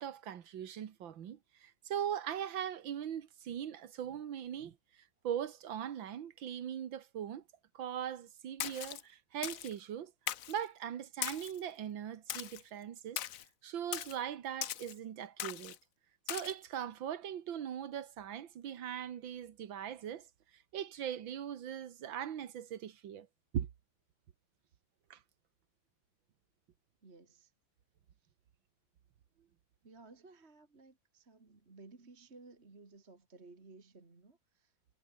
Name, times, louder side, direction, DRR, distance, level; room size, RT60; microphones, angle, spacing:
voice 1, 0.0-7.4 7.7-10.1 10.5-13.2 13.6-15.8 16.3-20.3 20.5-23.3 23.5-23.7 25.1-25.2, right 9 dB, 85° right, 2.1 m, -40 dB
Splash splatter, 8.6-9.0 9.4-9.7 10.3-10.6 11.2-11.6 12.3-12.6 13.2-13.4 13.9-14.2 14.6-14.9 15.4-15.8 16.3-16.5, left 11 dB, 60° left, 0.9 m, -39 dB
voice 2, 27.0-27.5 28.2-28.3 29.8-34.7, right 3 dB, 35° right, 2.7 m, -57 dB
omnidirectional pair, 2.1 m